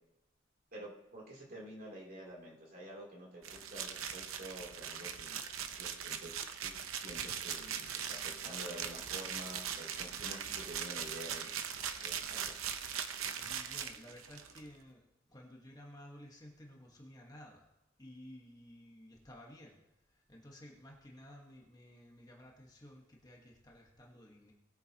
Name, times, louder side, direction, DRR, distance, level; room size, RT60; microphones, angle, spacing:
voice 1, 0.7-5.4 5.8-6.3 6.6-11.5 12.0-12.5, right 1 dB, 45° right, -4 dB, 3.1 m, -49 dB
sound 1, 3.4-14.6, right 8 dB, 90° right, 0.8 m, -40 dB
voice 2, 13.3-17.7 18.0-19.8 20.1-24.5, left 1 dB, 20° left, -1 dB, 1.3 m, -54 dB
19.5 x 8.8 x 2.9 m, 0.95 s
head